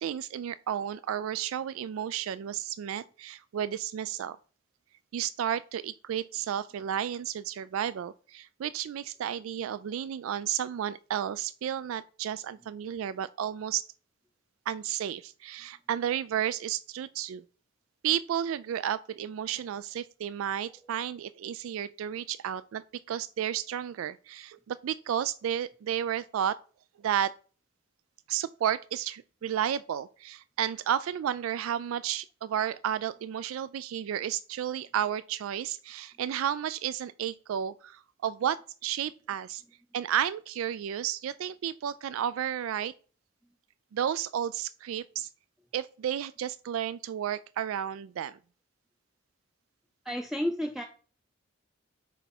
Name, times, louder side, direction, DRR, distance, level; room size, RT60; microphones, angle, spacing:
voice 1, 0.0-4.4 5.1-13.8 14.7-17.4 18.0-26.6 27.0-27.3 28.3-39.6 39.9-42.9 43.9-45.3 45.7-48.4, right 10 dB, 85° right, 0.3 m, -32 dB
voice 2, 50.0-50.9, equal, ahead, 0.5 m, -31 dB
9.1 x 3.5 x 5.8 m
head